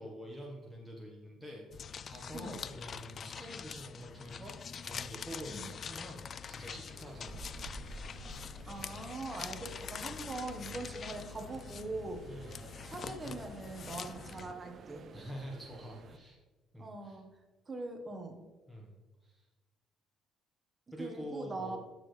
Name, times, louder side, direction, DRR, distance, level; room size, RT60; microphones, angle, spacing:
voice 1, 0.0-4.6 4.8-7.7 12.2-12.7 15.1-16.4 16.7-17.2 18.7-19.0 19.2-19.5 20.9-21.8, equal, ahead, -2 dB, 1.3 m, -46 dB
sound 1, 1.7-14.5, left 7 dB, 40° left, 0.3 m, -44 dB
sound 2, 6.9-16.2, right 4 dB, 45° right, 0.6 m, -52 dB
voice 2, 8.7-12.2 12.9-15.0 16.8-17.2 17.7-18.5 21.0-21.8, right 2 dB, 25° right, 4 dB, 1.2 m, -42 dB
12.5 x 6.7 x 3.3 m, 1.2 s
cardioid pair, 125°, 0 cm